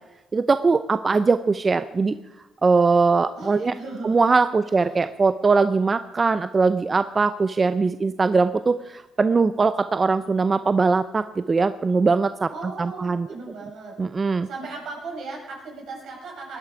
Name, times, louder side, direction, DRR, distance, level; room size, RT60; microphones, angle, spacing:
voice 1, 0.3-2.2 2.6-3.7 4.0-12.5 12.8-13.3 14.0-14.5, right 4 dB, 30° right, 12 dB, 0.5 m, -21 dB
voice 2, 3.3-4.2 4.6-5.0 12.5-14.0 14.4-16.6, right 3 dB, 75° right, -1 dB, 6.2 m, -37 dB
19.0 x 11.5 x 4.9 m, 1.1 s
cardioid pair, 90°, 0 cm